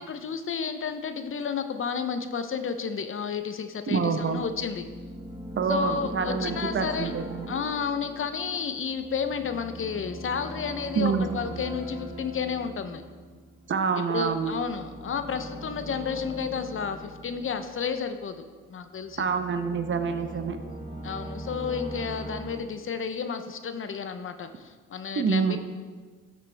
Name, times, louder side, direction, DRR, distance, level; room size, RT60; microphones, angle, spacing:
voice 1, 0.0-4.8 5.7-7.1 7.5-13.0 14.1-18.4 18.7-19.2 21.0-25.6, left 6 dB, 45° left, 9 dB, 0.7 m, -31 dB
voice 2, 3.9-4.4 5.6-7.6 10.9-11.3 13.7-14.5 19.2-20.6 25.2-25.6, right 5 dB, 40° right, 8 dB, 0.8 m, -27 dB
sound 1, 4.2-18.5 19.0-22.6, right 1 dB, 15° right, 1.9 m, -41 dB
12.0 x 6.6 x 3.4 m, 1.4 s
cardioid pair, 90°, 30 cm